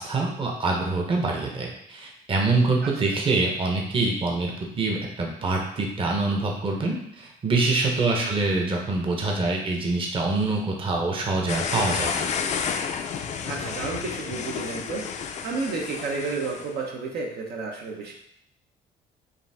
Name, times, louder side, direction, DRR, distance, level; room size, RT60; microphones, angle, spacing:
voice 1, 0.0-12.3, right 3 dB, 30° right, 0 dB, 0.8 m, -25 dB
voice 2, 2.8-3.2 8.1-8.4 13.4-18.1, right 4 dB, 70° right, 0 dB, 0.9 m, -32 dB
sound 1, 11.5-16.7, left 6 dB, 45° left, 0.4 m, -31 dB
5.1 x 2.6 x 3.4 m, 0.72 s
cardioid pair, 110°, 17 cm